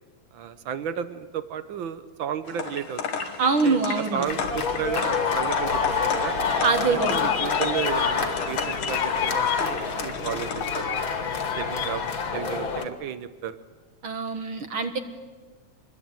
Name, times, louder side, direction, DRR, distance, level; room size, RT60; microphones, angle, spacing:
voice 1, 0.3-3.2 3.6-6.3 6.8-11.0 11.5-12.0 12.3-13.6, right 8 dB, 85° right, 12 dB, 1.0 m, -33 dB
sound 1, 2.5-10.8, left 6 dB, 85° left, 3.6 m, -34 dB
voice 2, 3.4-4.3 6.6-7.2 14.0-15.0, right 4 dB, 50° right, 8 dB, 2.0 m, -24 dB
sound 2, 4.2-12.8, left 5 dB, 40° left, 2.8 m, -27 dB
sound 3, 6.9-9.5 10.2-11.0 11.3-11.9, left 11 dB, 70° left, 2.6 m, -33 dB
26.5 x 22.0 x 9.1 m, 1.3 s
omnidirectional pair, 3.6 m